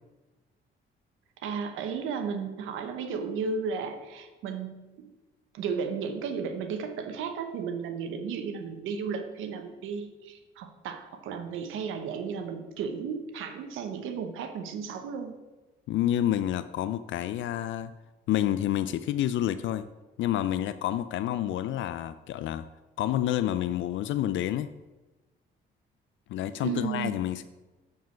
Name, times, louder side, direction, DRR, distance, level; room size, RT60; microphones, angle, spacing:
voice 1, 1.4-5.1 5.5-15.3 26.6-27.1, right 6 dB, 90° right, 7 dB, 1.0 m, -34 dB
voice 2, 15.9-17.9 18.3-19.9 20.2-22.7 23.0-24.7 26.3-27.4, left 12 dB, 75° left, 13 dB, 0.4 m, -29 dB
9.3 x 4.6 x 5.7 m, 1.1 s
cardioid pair, 90°, 20 cm